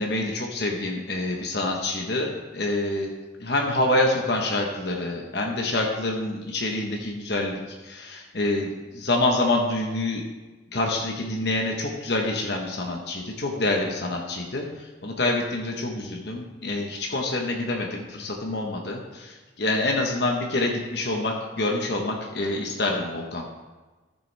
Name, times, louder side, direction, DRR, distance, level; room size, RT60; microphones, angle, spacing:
voice 1, 0.0-3.1 3.4-7.6 7.8-10.2 10.7-23.5, left 2 dB, 60° left, 0 dB, 1.1 m, -26 dB
14.0 x 6.8 x 3.4 m, 1.2 s
head